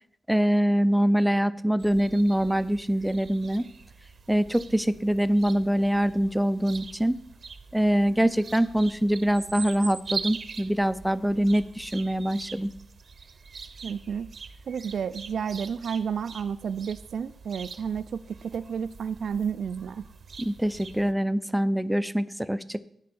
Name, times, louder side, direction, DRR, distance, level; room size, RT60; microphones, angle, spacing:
voice 1, 0.3-3.7 4.3-7.2 7.7-12.7 20.4-22.8, equal, ahead, 14 dB, 0.5 m, -24 dB
sound 1, 1.8-21.1, right 5 dB, 50° right, 0.7 m, -43 dB
voice 2, 13.8-14.3 14.7-20.0, right 7 dB, 70° right, 12 dB, 0.3 m, -31 dB
10.0 x 5.2 x 8.4 m, 0.69 s
wide cardioid pair, 115°, 0 cm